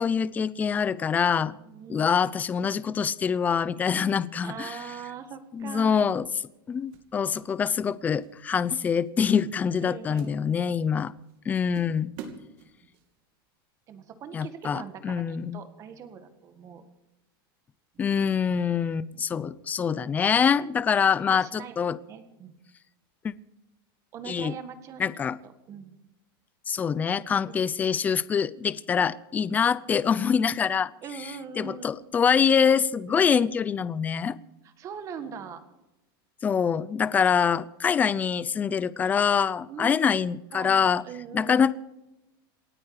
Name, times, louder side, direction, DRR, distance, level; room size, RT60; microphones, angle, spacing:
voice 1, 0.0-1.6 1.9-4.8 5.5-6.3 6.7-11.1 11.5-12.1 14.3-15.6 18.0-22.0 23.2-23.3 24.3-24.5 25.0-25.4 26.7-30.9 31.6-34.4 36.4-41.0 41.3-41.7, left 7 dB, 15° left, 18 dB, 0.5 m, -25 dB
voice 2, 1.6-2.1 4.4-6.1 9.8-10.7 13.9-16.8 20.9-21.0 21.3-22.6 24.1-25.1 25.4-26.0 27.5-27.6 31.0-32.0 33.1-33.4 34.6-35.6 39.7-40.1 40.5-41.7, right 7 dB, 25° right, 9 dB, 1.8 m, -42 dB
sound 1, 5.6-5.8 6.9-7.9 8.1-8.4 8.9-9.1 9.4-10.9 11.3-11.4 11.7-13.1, right 6 dB, 45° right, 2.6 m, -45 dB
28.0 x 9.4 x 4.9 m, 0.95 s
supercardioid pair, 165°, 12 cm